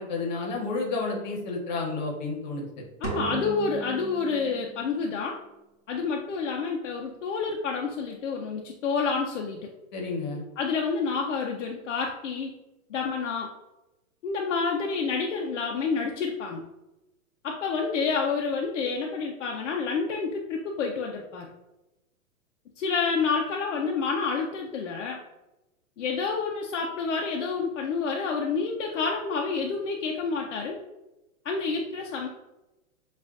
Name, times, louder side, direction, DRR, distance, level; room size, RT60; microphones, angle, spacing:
voice 1, 0.0-2.8 9.9-10.4, left 3 dB, 30° left, 0 dB, 0.9 m, -31 dB
voice 2, 3.0-5.4 5.9-9.7 10.6-12.5 12.9-13.5 14.2-16.6 17.4-21.5 22.8-25.2 26.0-30.8 31.4-32.3, left 5 dB, 60° left, 1 dB, 0.6 m, -29 dB
sound 1, 3.0-5.1, right 5 dB, 60° right, 1.0 m, -36 dB
7.3 x 2.5 x 2.4 m, 0.97 s
hypercardioid pair, 175°, 43 cm